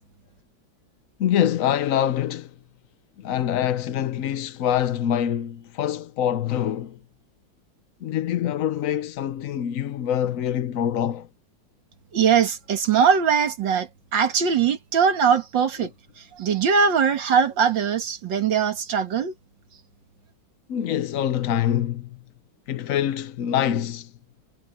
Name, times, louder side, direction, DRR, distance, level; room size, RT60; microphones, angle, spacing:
voice 1, 1.2-2.5 3.2-7.0 8.0-11.3 20.7-22.2 22.7-24.1, left 10 dB, 60° left, 0.9 m, -25 dB
voice 2, 12.1-15.9 16.4-19.3, right 7 dB, 70° right, 2.3 m, -21 dB
omnidirectional pair, 2.1 m